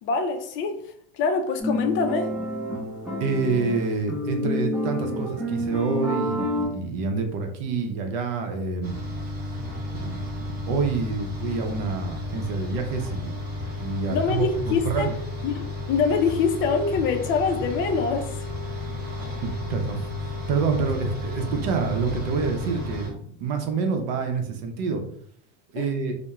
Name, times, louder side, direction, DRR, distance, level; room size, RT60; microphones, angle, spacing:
voice 1, 0.0-0.8 1.1-2.3 14.1-15.1 15.4-18.3 25.8-25.9, left 5 dB, 40° left, 0.4 m, -24 dB
sound 1, 1.6-6.7, equal, 5° right, 0.8 m, -28 dB
voice 2, 3.2-8.9 9.9-13.4 13.8-15.1 19.4-25.0 25.7-26.2, right 4 dB, 70° right, 0.7 m, -27 dB
sound 2, 8.8-23.1, left 2 dB, 35° right, 0.8 m, -33 dB
2.3 x 2.1 x 2.9 m
supercardioid pair, 130°, 30 cm